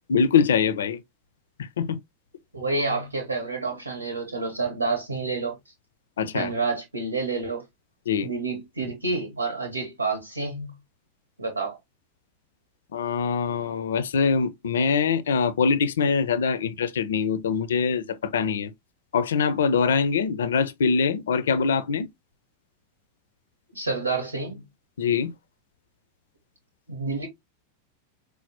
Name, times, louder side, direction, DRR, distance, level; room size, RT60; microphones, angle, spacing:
voice 1, 0.1-1.0 1.6-2.0 6.2-6.5 8.1-8.3 12.9-18.7 19.1-22.1 25.0-25.3, left 5 dB, 65° left, 0.4 m, -23 dB
voice 2, 2.5-5.6 6.3-7.6 8.2-10.7 11.4-11.8 23.7-24.6 26.9-27.3, right 3 dB, 80° right, 1.0 m, -29 dB
4.7 x 2.0 x 2.8 m
figure-of-eight pair, 90°, 0 cm